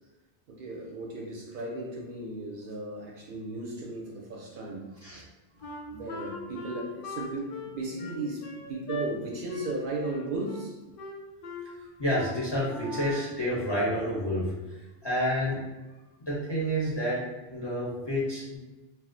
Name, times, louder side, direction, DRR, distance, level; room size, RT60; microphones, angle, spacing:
voice 1, 0.5-4.9 5.9-10.7, right 2 dB, 60° right, -2 dB, 0.6 m, -36 dB
Wind instrument woodwind instrument, 5.6-9.1 9.5-9.8 10.0-10.7 11.0-11.7 12.1-12.3 12.7-13.4, left 1 dB, 65° left, 0.7 m, -39 dB
voice 2, 12.0-15.6 16.3-18.6, equal, 30° left, -7 dB, 0.6 m, -29 dB
2.4 x 2.0 x 3.7 m, 1.1 s
omnidirectional pair, 1.1 m